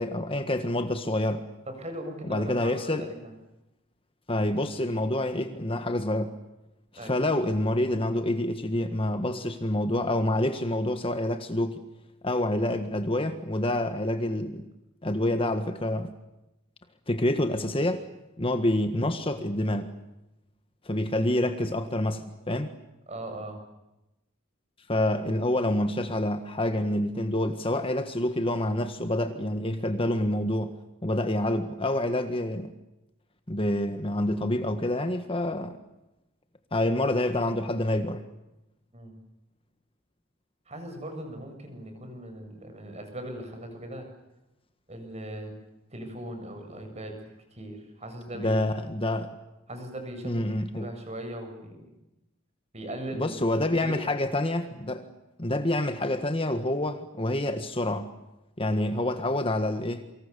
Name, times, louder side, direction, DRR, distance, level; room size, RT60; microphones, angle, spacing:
voice 1, 0.0-1.4 2.3-3.1 4.3-6.3 7.0-11.8 12.2-14.7 15.0-16.1 17.1-18.0 18.4-19.9 20.8-22.7 24.9-30.7 31.0-32.7 33.5-35.8 36.7-38.2 48.4-49.4 50.2-50.9 53.1-55.1 55.4-58.1 58.6-60.1, left 1 dB, 25° left, 8 dB, 1.6 m, -27 dB
voice 2, 1.7-3.3 7.0-7.1 23.1-23.6 38.9-39.1 40.7-44.1 44.9-45.5 45.9-48.6 49.7-50.4 50.8-51.9 52.7-53.3 53.8-54.1, right 1 dB, 30° right, 5 dB, 7.5 m, -39 dB
28.5 x 25.5 x 7.0 m, 0.94 s
head